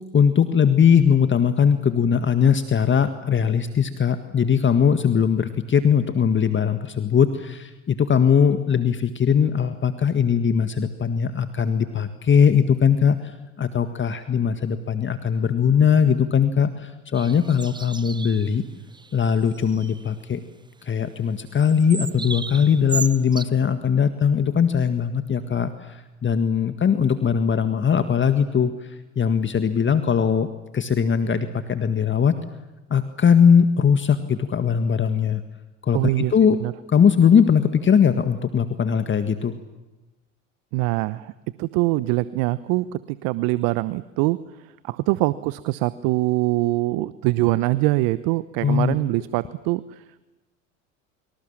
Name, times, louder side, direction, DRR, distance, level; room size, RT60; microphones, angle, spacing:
voice 1, 0.1-13.2 13.6-18.6 19.1-20.4 20.8-30.5 30.7-32.4 32.9-35.4 35.8-36.6 36.9-39.5 48.6-48.9, left 7 dB, 30° left, 9 dB, 1.8 m, -20 dB
sound 1, 17.1-18.6 18.9-19.1 19.4-20.1 21.6-23.4, right 4 dB, 10° right, 0.8 m, -34 dB
voice 2, 35.9-36.7 40.7-41.3 41.6-44.4 44.8-50.0, right 19 dB, 60° right, 16 dB, 1.0 m, -23 dB
30.0 x 25.5 x 7.4 m, 1.1 s
hypercardioid pair, 75°, 39 cm